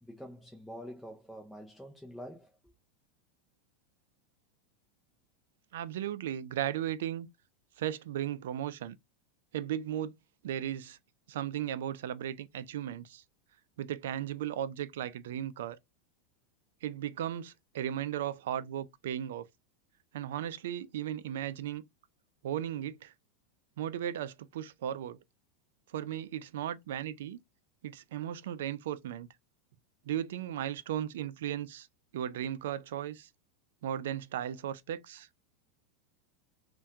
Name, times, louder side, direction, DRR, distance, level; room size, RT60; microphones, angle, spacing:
voice 1, 0.0-2.6, equal, ahead, 0.5 m, -46 dB
voice 2, 5.7-7.3 7.8-9.0 9.5-10.1 10.4-11.0 11.3-13.2 13.8-15.8 16.8-19.5 20.1-21.8 22.4-23.1 23.8-25.2 25.9-27.4 27.8-29.3 30.1-31.9 32.1-33.3 33.8-35.3, right 11 dB, 80° right, 0.3 m, -36 dB
3.3 x 2.2 x 2.7 m
supercardioid pair, 125°, 0 cm